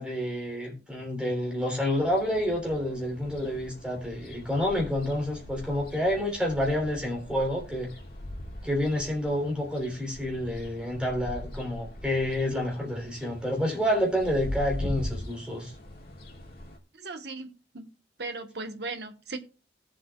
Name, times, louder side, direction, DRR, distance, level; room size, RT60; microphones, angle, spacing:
voice 1, 0.0-7.9 8.6-15.7, left 1 dB, 5° right, 3.5 m, -29 dB
sound 1, 1.9-16.8, left 1 dB, 55° left, 2.7 m, -41 dB
voice 2, 16.9-17.9 18.2-19.4, right 3 dB, 65° right, 1.3 m, -37 dB
19.0 x 7.5 x 2.4 m
head